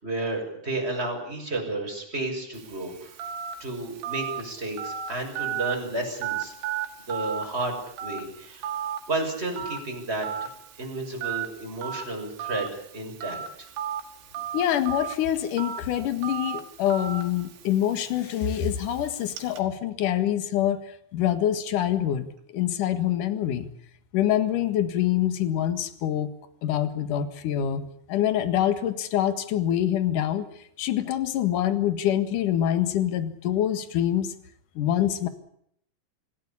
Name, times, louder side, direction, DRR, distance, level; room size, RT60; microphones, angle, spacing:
voice 1, 0.0-3.3 3.6-6.5 7.1-10.5 10.8-13.7, right 2 dB, 15° right, 1 dB, 6.1 m, -32 dB
Telephone, 2.5-19.6, right 8 dB, 85° right, 4.5 m, -36 dB
voice 2, 14.5-23.7 24.1-26.3 26.6-30.5 30.8-34.3 34.8-35.3, left 11 dB, 55° left, 10 dB, 2.7 m, -25 dB
26.0 x 17.0 x 8.6 m, 0.73 s
omnidirectional pair, 5.2 m